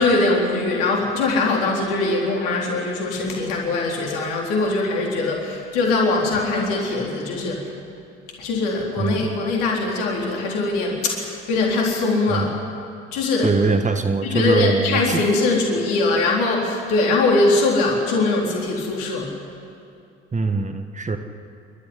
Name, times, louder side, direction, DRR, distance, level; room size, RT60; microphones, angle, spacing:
voice 1, 0.0-7.7 8.4-12.6 13.1-13.5 14.2-19.3, left 3 dB, 60° left, -1 dB, 4.1 m, -21 dB
voice 2, 13.4-15.2 20.3-21.2, right 3 dB, 20° right, 7 dB, 1.5 m, -22 dB
27.5 x 13.5 x 9.8 m, 2.5 s
figure-of-eight pair, 60°, 35 cm